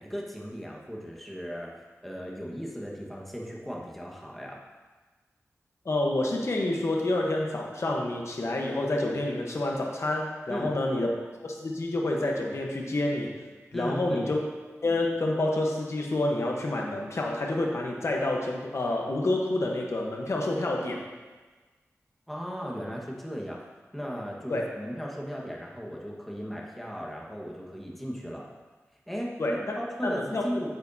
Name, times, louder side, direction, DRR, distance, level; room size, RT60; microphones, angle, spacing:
voice 1, 0.0-1.7 2.0-4.6 10.5-10.7 13.7-14.3 22.3-23.7 23.9-28.5 29.1-30.7, equal, 5° left, -2 dB, 1.4 m, -36 dB
voice 2, 5.8-11.1 11.4-13.3 13.7-14.4 14.8-21.0 24.5-24.6 29.4-29.8 30.0-30.4, left 2 dB, 60° left, 0 dB, 1.1 m, -28 dB
8.9 x 8.3 x 2.8 m, 1.3 s
wide cardioid pair, 80°, 5 cm